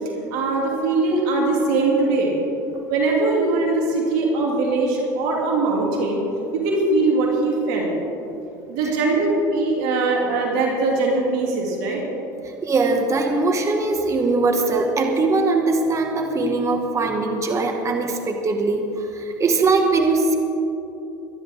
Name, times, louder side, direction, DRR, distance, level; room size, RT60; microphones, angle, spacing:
voice 1, 0.3-2.3 2.9-6.2 6.5-7.9 8.7-12.0, right 3 dB, 70° right, -1 dB, 2.9 m, -21 dB
voice 2, 12.6-20.4, right 3 dB, 30° right, 3 dB, 1.8 m, -21 dB
23.5 x 10.5 x 3.7 m, 2.9 s
hypercardioid pair, 85°, 10 cm